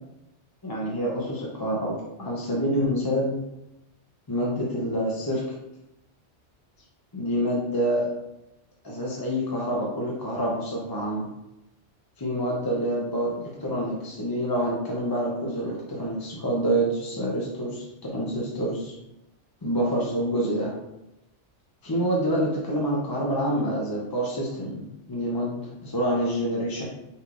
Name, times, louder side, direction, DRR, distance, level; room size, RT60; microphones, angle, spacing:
voice 1, 0.6-3.4 4.3-5.4 7.1-8.1 8.8-11.3 12.2-18.9 19.6-20.7 21.8-26.8, equal, 25° left, -4 dB, 0.5 m, -27 dB
5.4 x 3.3 x 2.5 m, 0.90 s
omnidirectional pair, 1.2 m